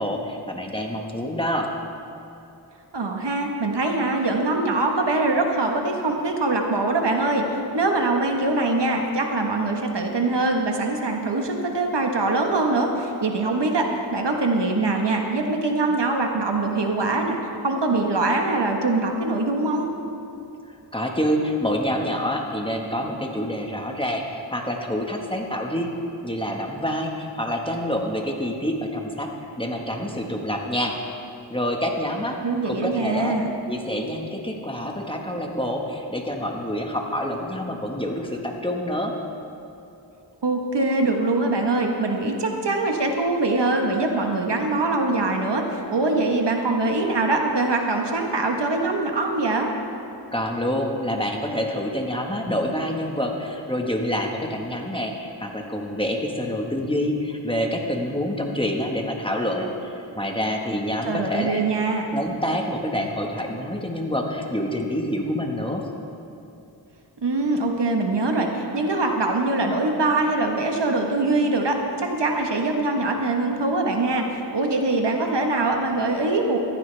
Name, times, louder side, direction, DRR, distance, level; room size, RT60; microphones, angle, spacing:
voice 1, 0.0-1.7 20.9-25.9 26.2-29.3 29.6-30.9 31.5-33.3 33.7-39.1 50.3-61.6 62.1-65.9, equal, 10° left, 1 dB, 1.6 m, -27 dB
voice 2, 2.9-17.4 17.6-19.9 32.4-33.4 40.4-49.7 61.1-62.0 67.2-74.2 74.5-76.6, right 2 dB, 70° right, 2 dB, 1.4 m, -23 dB
15.0 x 14.0 x 3.4 m, 2.8 s
wide cardioid pair, 50°, 43 cm